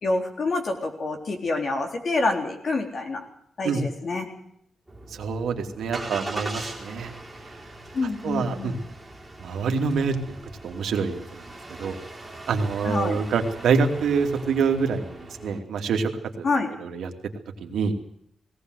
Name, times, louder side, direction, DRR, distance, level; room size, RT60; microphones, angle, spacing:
voice 1, 0.0-3.2 3.6-4.3 7.9-8.8 12.8-13.2 16.4-16.7, left 3 dB, 45° left, 4 dB, 3.8 m, -27 dB
Engine starting, 4.9-15.6, right 2 dB, 5° right, 4.0 m, -40 dB
voice 2, 5.1-7.1 8.2-8.8 9.4-10.4 10.6-11.4 11.8-12.0 12.5-16.1 16.4-16.5 16.8-17.1 17.6-17.9, right 5 dB, 85° right, 4 dB, 2.7 m, -26 dB
19.0 x 18.0 x 8.0 m, 0.70 s
wide cardioid pair, 140°, 0 cm